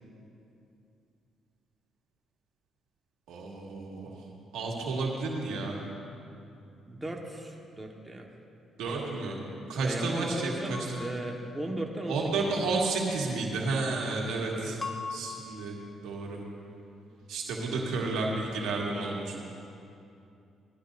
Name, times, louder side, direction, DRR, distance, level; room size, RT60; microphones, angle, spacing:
voice 1, 3.3-4.1 4.5-5.8 8.8-9.4 9.7-10.8 12.1-14.8 15.1-15.8 16.0-16.4 17.3-19.4, right 3 dB, 80° right, -2 dB, 1.9 m, -31 dB
voice 2, 6.8-8.3 9.8-12.7 14.6-14.8 17.1-17.2 17.7-18.0, right 1 dB, 15° right, -1 dB, 1.5 m, -37 dB
sound 1, 10.7-11.9 14.8-16.2, left 4 dB, 30° left, 0.8 m, -41 dB
18.5 x 12.5 x 2.7 m, 2.6 s
supercardioid pair, 70°, 0 cm